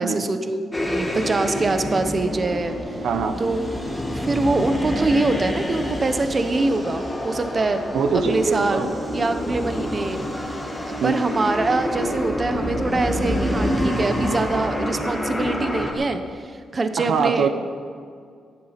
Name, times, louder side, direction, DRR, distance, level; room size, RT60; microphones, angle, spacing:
voice 1, 0.0-3.0 3.4-3.7 4.1-7.8 8.1-10.2 10.9-17.5, right 3 dB, 30° right, 8 dB, 0.9 m, -24 dB
sound 1, 0.7-15.9, equal, 5° left, 1.9 m, -27 dB
voice 2, 3.0-3.4 7.9-8.9 11.0-11.1 17.0-17.5, right 5 dB, 75° right, 8 dB, 1.0 m, -22 dB
14.0 x 11.0 x 5.8 m, 2.2 s
cardioid pair, 125°, 0 cm